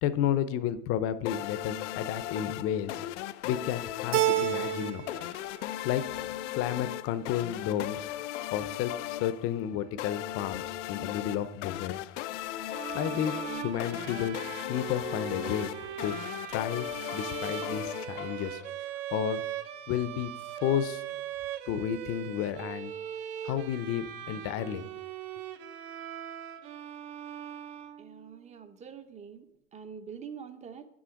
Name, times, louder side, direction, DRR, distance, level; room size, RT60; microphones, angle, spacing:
voice 1, 0.0-3.0 3.4-5.0 5.8-6.0 6.5-8.1 8.5-12.1 12.9-14.4 14.7-15.7 16.0-16.1 16.5-16.9 17.1-18.6 19.1-19.4 19.9-20.3 20.6-21.0 21.7-22.9 23.4-24.8, left 10 dB, 40° left, 14 dB, 0.7 m, -31 dB
sound 1, 1.2-18.7, left 13 dB, 85° left, 0.6 m, -37 dB
Keyboard (musical), 4.1-5.2 5.5-6.3, right 15 dB, 80° right, 0.6 m, -29 dB
sound 2, 12.7-28.4, right 10 dB, 60° right, 1.0 m, -40 dB
voice 2, 28.0-29.5 29.7-30.9, right 7 dB, 20° right, 11 dB, 0.7 m, -45 dB
9.1 x 6.3 x 5.8 m, 0.80 s
supercardioid pair, 135°, 35 cm